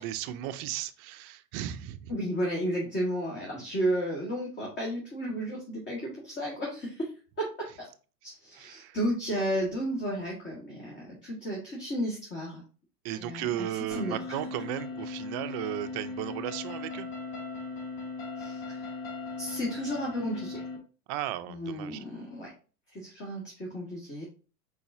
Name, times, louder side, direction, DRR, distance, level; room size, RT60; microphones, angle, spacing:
voice 1, 0.0-2.1 8.5-9.0 13.0-17.1 21.1-22.0, right 12 dB, 40° right, 11 dB, 0.5 m, -35 dB
voice 2, 2.1-7.1 7.4-7.9 8.2-12.6 13.1-13.7 14.0-14.2 18.4-18.9 19.4-20.6 21.5-22.5 22.9-24.2, equal, 25° left, -3 dB, 1.7 m, -33 dB
sound 1, 13.9-20.8, left 3 dB, 50° left, 2.3 m, -38 dB
4.8 x 4.0 x 2.7 m, 0.35 s
hypercardioid pair, 110°, 48 cm